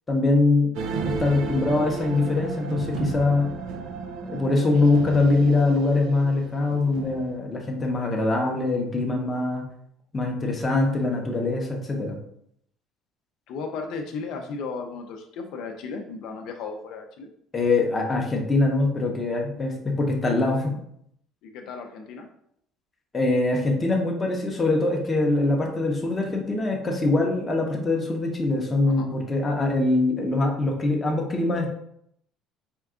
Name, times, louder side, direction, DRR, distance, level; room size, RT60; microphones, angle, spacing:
voice 1, 0.1-0.7 1.0-3.5 4.2-9.6 10.1-12.2 17.5-20.8 23.1-31.7, left 2 dB, 15° left, 0 dB, 0.7 m, -23 dB
sound 1, 0.7-7.4, right 5 dB, 60° right, 0.4 m, -34 dB
voice 2, 13.5-17.3 21.4-22.3 28.8-29.1, left 4 dB, 60° left, 3 dB, 0.5 m, -35 dB
4.4 x 2.3 x 3.6 m, 0.70 s
cardioid pair, 160°, 0 cm